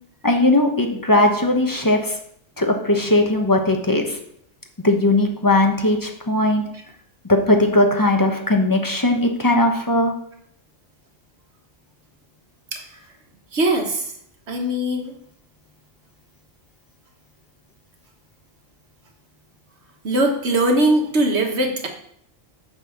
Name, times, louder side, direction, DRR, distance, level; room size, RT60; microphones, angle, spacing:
voice 1, 0.2-2.2 2.6-4.2 4.8-6.6 7.3-10.1, left 1 dB, 15° left, 3 dB, 1.0 m, -18 dB
voice 2, 13.5-14.1 14.5-15.1 20.0-21.9, right 1 dB, 60° right, 3 dB, 1.6 m, -21 dB
6.1 x 5.7 x 7.0 m, 0.69 s
omnidirectional pair, 1.3 m